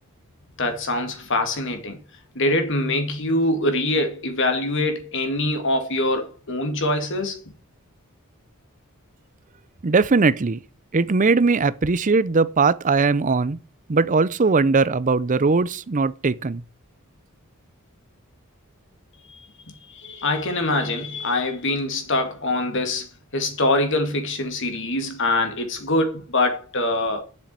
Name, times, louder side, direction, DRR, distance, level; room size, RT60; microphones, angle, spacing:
voice 1, 0.6-2.0 2.4-7.4 19.3-19.4 19.9-23.1 23.3-27.2, left 2 dB, 60° left, 2.4 m, -24 dB
voice 2, 9.8-10.6 10.9-13.6 13.9-16.6, right 4 dB, 35° right, 0.6 m, -20 dB
7.5 x 7.4 x 8.2 m
head